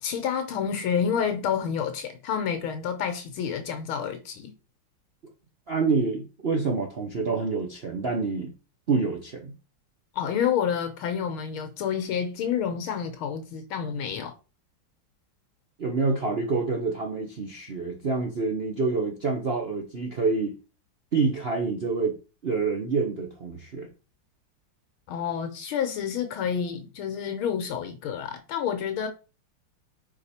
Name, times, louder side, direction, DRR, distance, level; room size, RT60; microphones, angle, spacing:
voice 1, 0.0-4.5 10.2-14.3 25.1-29.1, left 8 dB, 75° left, 1.6 m, -29 dB
voice 2, 5.7-8.5 8.9-9.5 15.8-20.6 21.1-22.2 22.4-23.9, right 4 dB, 75° right, 0.5 m, -27 dB
4.9 x 4.6 x 4.2 m
omnidirectional pair, 2.4 m